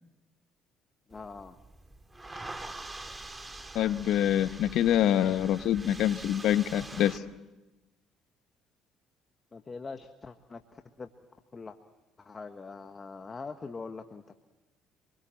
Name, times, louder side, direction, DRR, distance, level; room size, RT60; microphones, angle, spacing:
voice 1, 1.1-1.6 9.5-11.1 11.5-11.8 12.2-14.3, left 4 dB, 30° left, 7 dB, 1.4 m, -43 dB
sound 1, 1.1-7.2, right 2 dB, 20° right, 2.3 m, -44 dB
voice 2, 3.7-7.2, left 11 dB, 70° left, 13 dB, 1.0 m, -25 dB
27.0 x 22.0 x 7.7 m, 1.0 s
supercardioid pair, 70°, 0 cm